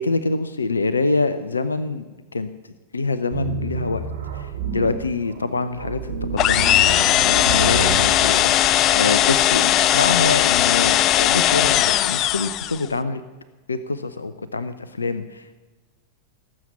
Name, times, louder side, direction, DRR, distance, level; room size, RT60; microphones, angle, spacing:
voice 1, 0.0-2.0 2.3-2.5 2.9-4.0 4.3-6.0 6.3-13.2 13.7-15.5, left 3 dB, 75° left, 13 dB, 0.7 m, -25 dB
sound 1, 3.3-8.5, right 5 dB, 70° right, 2.5 m, -29 dB
sound 2, 6.4-12.9, left 13 dB, 35° left, 0.4 m, -18 dB
18.5 x 7.6 x 8.3 m, 1.2 s
figure-of-eight pair, 90°, 0 cm